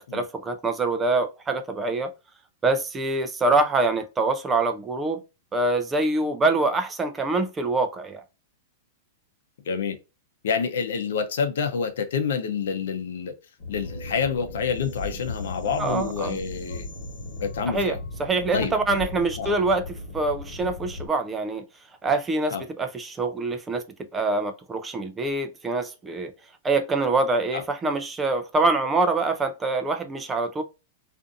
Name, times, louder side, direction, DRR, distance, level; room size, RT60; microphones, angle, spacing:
voice 1, 0.0-2.1 2.6-5.2 5.5-8.2 15.8-16.4 17.7-19.8 20.1-21.6 22.0-23.8 24.1-26.3 26.6-30.6, right 3 dB, 15° right, 0.3 m, -25 dB
voice 2, 9.7-10.0 10.4-13.3 13.7-16.9 17.4-18.0 18.5-19.1 19.4-19.5 22.5-22.6 27.5-27.6, left 6 dB, 80° left, 0.6 m, -28 dB
sound 1, 13.6-21.1, left 2 dB, 45° left, 1.2 m, -37 dB
2.5 x 2.4 x 2.4 m
supercardioid pair, 150°, 0 cm